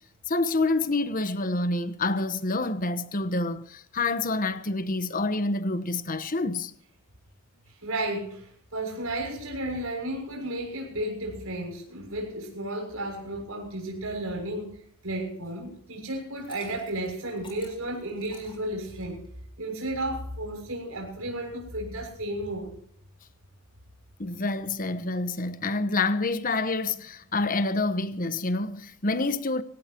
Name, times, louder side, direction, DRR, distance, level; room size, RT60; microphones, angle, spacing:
voice 1, 0.3-6.7 24.2-29.6, left 2 dB, 40° left, 1.1 m, -27 dB
voice 2, 7.8-14.7 15.0-19.2 19.6-22.7, right 1 dB, 70° right, 6.7 m, -33 dB
Liquid, 16.2-19.3, left 4 dB, 25° left, 6.1 m, -51 dB
25.0 x 17.5 x 3.0 m
head